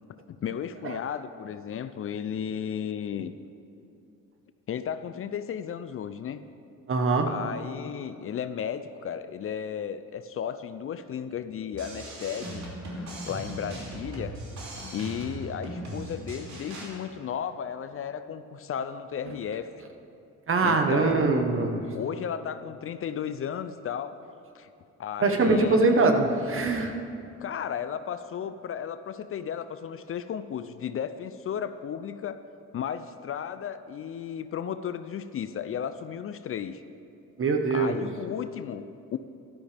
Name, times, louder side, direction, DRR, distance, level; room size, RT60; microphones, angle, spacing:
voice 1, 0.4-3.3 4.7-6.4 7.3-14.3 14.9-19.7 20.6-24.2 24.5-24.7 25.0-26.0 27.4-32.4 32.7-36.8 37.7-39.2, left 8 dB, 45° left, 11 dB, 0.5 m, -34 dB
voice 2, 6.9-7.3 20.5-21.8 25.2-26.9 37.4-38.0, right 3 dB, 45° right, 5 dB, 1.2 m, -23 dB
sound 1, 11.7-16.9, right 1 dB, 65° right, 3.0 m, -38 dB
12.5 x 12.0 x 3.5 m, 2.6 s
cardioid pair, 90°, 30 cm